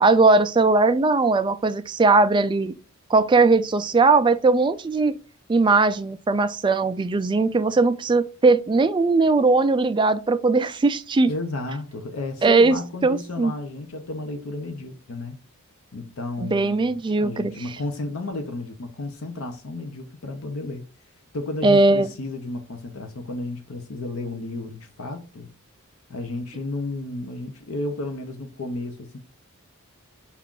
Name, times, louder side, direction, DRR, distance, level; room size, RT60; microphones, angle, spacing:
voice 1, 0.0-2.7 3.1-5.1 5.5-11.3 12.4-12.8 13.0-13.5 16.4-17.5 21.6-22.1, right 3 dB, 20° right, 0.3 m, -19 dB
voice 2, 11.3-15.4 15.9-20.9 21.3-25.5 26.1-29.2, left 2 dB, 70° left, 0.7 m, -32 dB
5.7 x 2.4 x 3.7 m
head